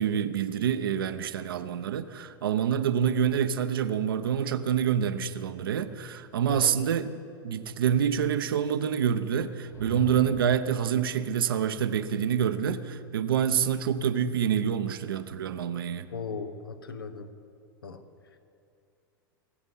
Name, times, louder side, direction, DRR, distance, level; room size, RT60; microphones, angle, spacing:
voice 1, 0.0-7.1 7.4-16.1, right 8 dB, 80° right, 10 dB, 0.8 m, -27 dB
sound 1, 9.6-10.8, left 8 dB, 20° left, 0.8 m, -41 dB
voice 2, 16.1-17.3 17.8-18.0, left 5 dB, 85° left, 9 dB, 1.1 m, -37 dB
21.0 x 8.2 x 5.5 m, 2.6 s
hypercardioid pair, 100°, 12 cm